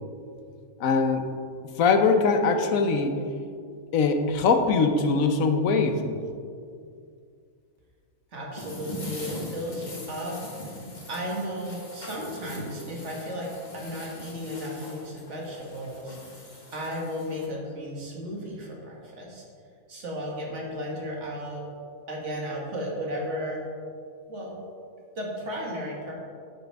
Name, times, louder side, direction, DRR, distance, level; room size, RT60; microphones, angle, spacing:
voice 1, 0.8-1.3 1.8-3.2 3.9-6.2, left 4 dB, 75° left, 6 dB, 1.2 m, -22 dB
voice 2, 8.3-10.8 11.1-16.4 16.7-19.4 19.9-21.6 22.1-23.6 24.3-24.6 25.2-26.1, equal, 55° right, -2 dB, 2.0 m, -34 dB
sound 1, 8.6-17.5, left 1 dB, 30° left, 1.5 m, -41 dB
10.5 x 7.7 x 3.4 m, 2.3 s
omnidirectional pair, 1.5 m